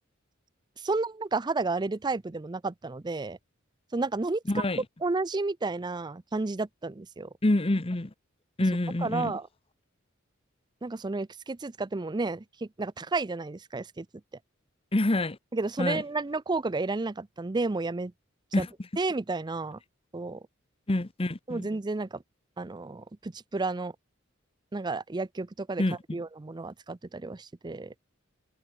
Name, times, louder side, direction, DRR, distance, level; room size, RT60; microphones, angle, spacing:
voice 1, 0.8-3.4 3.9-4.6 5.0-7.3 9.0-9.5 10.8-14.1 15.5-18.1 18.6-18.7 19.0-19.8 20.1-20.4 21.5-22.2 22.6-23.9 24.7-25.8 26.1-27.9, right 3 dB, 20° right, 0.5 m, -31 dB
voice 2, 4.5-4.8 7.4-8.1 8.6-9.3 14.9-15.4 15.8-16.0 18.5-18.7 20.9-21.7 25.8-26.2, left 1 dB, 30° left, 0.9 m, -27 dB
head